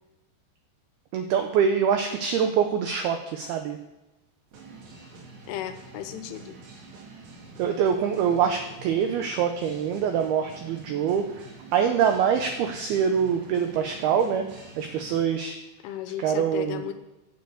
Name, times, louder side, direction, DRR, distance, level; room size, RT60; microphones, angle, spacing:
voice 1, 1.1-3.8 7.6-11.5 11.7-15.6 16.2-16.9, right 7 dB, 85° right, 6 dB, 2.2 m, -25 dB
sound 1, 4.5-15.3, right 3 dB, 55° right, 4.0 m, -46 dB
voice 2, 5.5-6.6 15.8-16.9, left 11 dB, 85° left, 8 dB, 3.5 m, -35 dB
9.2 x 8.5 x 8.0 m, 1.0 s
omnidirectional pair, 5.6 m